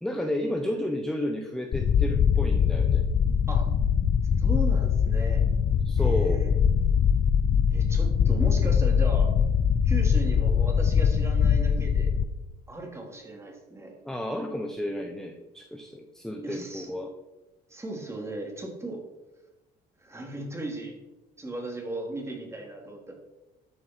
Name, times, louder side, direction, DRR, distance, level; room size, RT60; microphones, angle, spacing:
voice 1, 0.0-3.0 5.8-6.4 14.0-17.1, left 1 dB, 5° left, 4 dB, 1.1 m, -32 dB
sound 1, 1.7-12.2, left 7 dB, 45° left, 0.7 m, -22 dB
voice 2, 4.4-5.4 6.0-6.6 7.7-9.3 9.8-12.1 12.7-14.0 16.4-16.9 17.7-19.0 20.0-21.0 21.4-23.1, right 2 dB, 15° right, 1 dB, 3.2 m, -36 dB
13.0 x 7.6 x 4.6 m, 1.1 s
cardioid pair, 110°, 17 cm